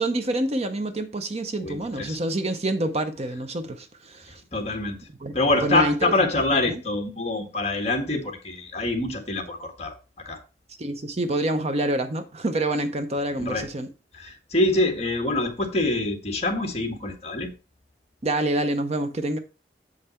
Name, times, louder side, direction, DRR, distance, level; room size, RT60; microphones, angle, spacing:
voice 1, 0.0-4.4 5.2-5.3 5.6-6.8 10.8-13.9 18.2-19.4, right 1 dB, 35° right, 0.7 m, -27 dB
voice 2, 1.6-2.2 4.5-5.1 5.3-10.0 10.2-10.4 13.3-13.7 14.1-17.5, left 2 dB, 35° left, 1.5 m, -25 dB
7.8 x 5.6 x 4.3 m
head